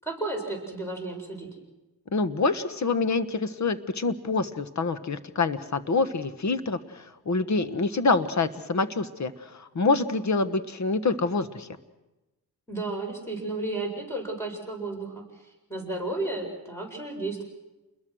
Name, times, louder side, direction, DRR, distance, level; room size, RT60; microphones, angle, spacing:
voice 1, 0.0-1.5 12.7-15.2 15.7-17.4, right 2 dB, 5° left, 1 dB, 7.8 m, -33 dB
voice 2, 2.1-11.7, left 3 dB, 45° left, 11 dB, 1.4 m, -26 dB
29.0 x 21.5 x 6.3 m, 1.1 s
cardioid pair, 100°, 39 cm